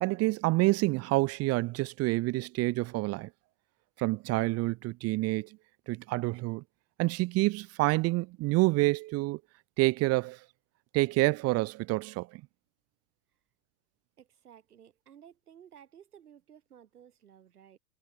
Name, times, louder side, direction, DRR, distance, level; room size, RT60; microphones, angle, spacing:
voice 1, 0.0-3.3 4.0-5.5 5.9-6.6 7.0-9.4 9.8-10.4 10.9-12.4, right 21 dB, 35° right, 0.7 m, -28 dB
voice 2, 14.2-17.8, right 9 dB, 80° right, 7.6 m, -55 dB
hypercardioid pair, 100°, 44 cm